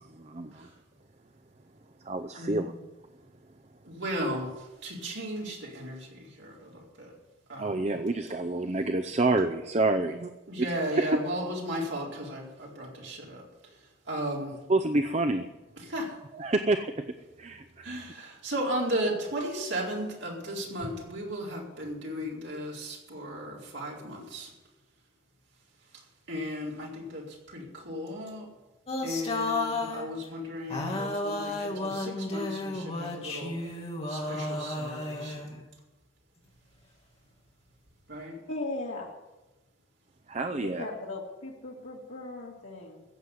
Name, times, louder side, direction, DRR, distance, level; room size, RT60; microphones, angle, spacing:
voice 1, 0.1-0.7 2.0-2.9 7.6-10.3 11.0-11.2 14.7-15.4 16.3-17.0 17.4-17.9 40.3-40.8, right 2 dB, 35° right, 8 dB, 0.6 m, -28 dB
voice 2, 3.8-7.1 7.5-8.0 10.5-13.4 14.1-14.5 15.8-16.1 17.8-24.5 26.3-28.5 29.0-33.5 34.1-35.6 38.1-38.4, equal, 75° right, -3 dB, 4.5 m, -35 dB
sound 1, 28.9-30.1 30.7-35.6, left 2 dB, 30° left, 2.5 m, -33 dB
voice 3, 38.5-39.1 40.6-43.0, left 2 dB, 85° left, -4 dB, 2.1 m, -37 dB
15.0 x 7.9 x 9.8 m, 1.1 s
head